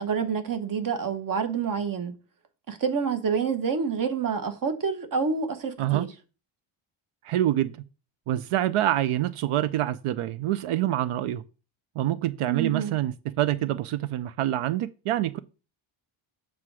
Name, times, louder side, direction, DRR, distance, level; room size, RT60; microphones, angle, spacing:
voice 1, 0.0-2.1 2.7-6.1 12.5-12.9, right 6 dB, 40° right, 1.0 m, -28 dB
voice 2, 7.2-7.8 8.3-11.4 12.0-15.4, right 13 dB, 90° right, 0.6 m, -26 dB
7.6 x 3.6 x 6.1 m
wide cardioid pair, 180°, 50 cm